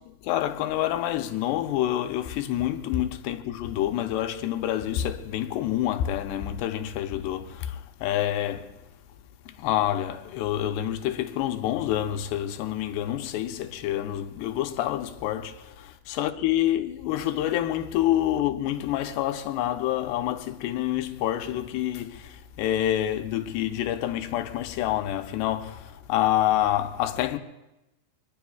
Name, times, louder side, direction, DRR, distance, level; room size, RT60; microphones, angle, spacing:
voice 1, 0.2-8.7 9.5-27.4, left 12 dB, 85° left, 2.9 m, -27 dB
25.5 x 20.5 x 2.4 m
omnidirectional pair, 4.8 m